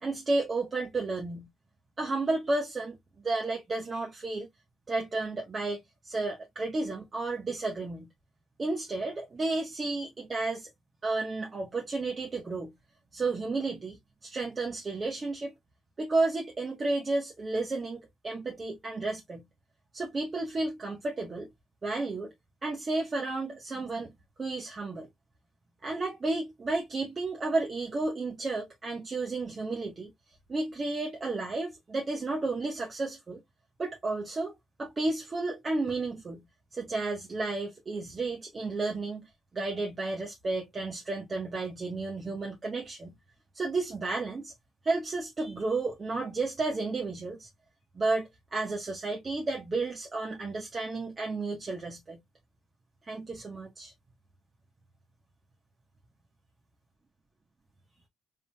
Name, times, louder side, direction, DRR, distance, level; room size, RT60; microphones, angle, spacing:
voice 1, 0.0-1.5 2.0-3.0 3.2-4.5 4.9-8.1 8.6-10.7 11.0-12.7 13.1-15.5 16.0-19.4 19.9-21.5 21.8-22.3 22.6-24.1 24.4-25.1 25.8-30.1 30.5-33.4 33.8-34.5 34.8-36.4 36.7-43.1 43.5-44.5 44.8-47.5 47.9-52.2 53.0-53.9, right 3 dB, 35° right, 1.5 m, -32 dB
3.9 x 3.8 x 2.4 m
cardioid pair, 90°, 0 cm